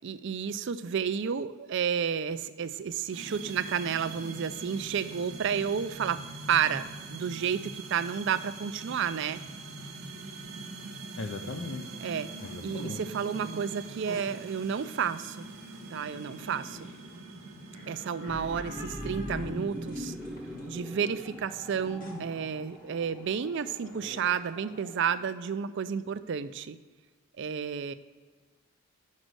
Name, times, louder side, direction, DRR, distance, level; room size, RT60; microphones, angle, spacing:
voice 1, 0.0-6.2 6.5-9.4 12.0-12.3 12.6-15.5 15.9-16.9 17.9-20.1 20.7-26.8 27.4-27.9, right 7 dB, 55° right, 13 dB, 0.4 m, -31 dB
sound 1, 3.1-22.4, right 3 dB, 70° right, 0.9 m, -44 dB
voice 2, 11.2-12.0 12.4-13.0, left 3 dB, 70° left, 5 dB, 0.5 m, -38 dB
sound 2, 11.6-25.4, equal, 40° left, 1.1 m, -48 dB
sound 3, 18.3-25.2, left 1 dB, ahead, 0.7 m, -41 dB
6.4 x 5.3 x 6.1 m, 1.4 s
head